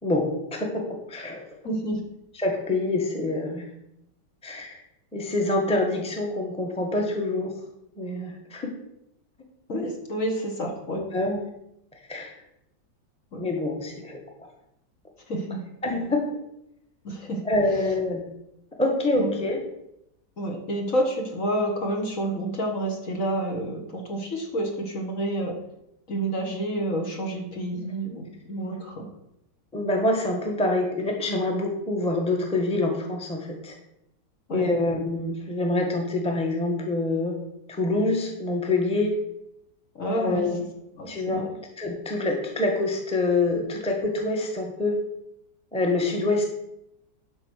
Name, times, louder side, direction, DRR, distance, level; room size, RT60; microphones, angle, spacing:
voice 1, 0.0-1.5 2.3-3.7 4.4-4.8 5.1-7.5 8.0-8.7 10.9-11.5 12.1-12.3 13.4-14.2 15.8-16.2 17.4-18.3 18.8-19.6 29.7-33.7 34.5-37.3 37.7-39.1 40.1-40.6 41.1-41.4 41.8-45.0 45.7-46.4, left 2 dB, 5° left, 1 dB, 1.3 m, -26 dB
voice 2, 1.6-2.0 9.7-11.0 13.3-13.4 15.3-15.6 17.0-17.4 19.2-19.3 20.4-25.6 26.1-29.1 34.5-34.6 40.0-40.5 41.0-41.5, right 1 dB, 50° left, 1 dB, 2.0 m, -29 dB
11.5 x 4.4 x 6.4 m, 0.81 s
omnidirectional pair, 1.9 m